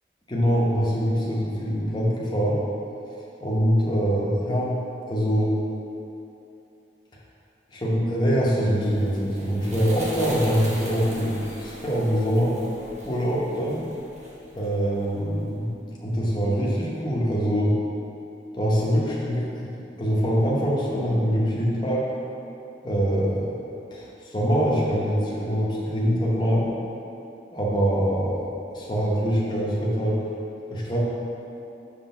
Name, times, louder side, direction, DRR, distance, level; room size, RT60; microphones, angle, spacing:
voice 1, 0.3-2.6 3.4-4.7 5.1-5.5 7.7-12.6 13.0-13.8 14.5-15.7 16.0-17.8 18.5-22.1 22.8-23.5 23.9-26.7 27.5-30.2 30.7-31.0, equal, 25° left, -5 dB, 0.9 m, -24 dB
sound 1, 8.7-15.3, right 1 dB, 40° right, 1.0 m, -41 dB
5.9 x 3.3 x 5.6 m, 2.8 s
head